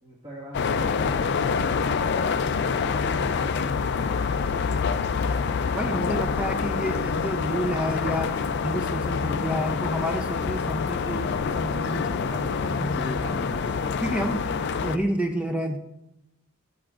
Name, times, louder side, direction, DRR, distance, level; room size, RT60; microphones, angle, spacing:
voice 1, 0.0-4.7 5.7-6.0, equal, 25° right, -6 dB, 1.6 m, -44 dB
sound 1, 0.5-15.0, left 5 dB, 50° left, 0.4 m, -26 dB
voice 2, 5.7-8.3 8.6-13.6 14.0-14.4 14.8-15.8, equal, 5° right, 4 dB, 0.5 m, -30 dB
14.0 x 7.2 x 2.4 m, 0.89 s
head